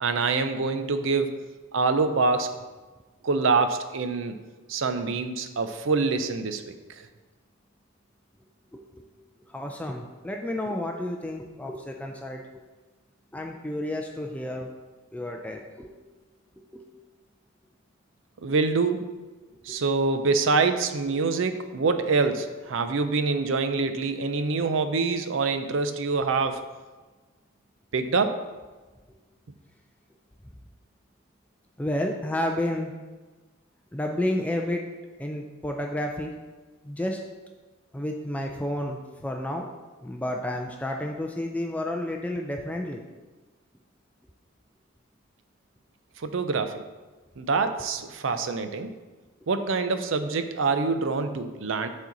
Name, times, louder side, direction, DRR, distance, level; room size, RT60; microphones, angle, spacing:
voice 1, 0.0-1.4 1.7-2.5 3.2-4.4 4.7-7.1 18.4-19.0 19.6-26.6 27.9-28.4 46.2-46.8 47.4-48.9 49.5-51.9, right 4 dB, 70° right, 9 dB, 0.5 m, -25 dB
voice 2, 8.7-9.0 9.5-12.4 13.3-14.7 15.1-15.9 16.7-16.8 19.7-19.8 21.1-21.2 24.6-24.7 31.8-32.9 33.9-34.8 35.2-36.3 36.8-37.2 37.9-39.7 40.0-43.0 47.8-47.9, left 1 dB, 5° left, 2 dB, 0.4 m, -31 dB
7.3 x 4.3 x 3.9 m, 1.3 s
head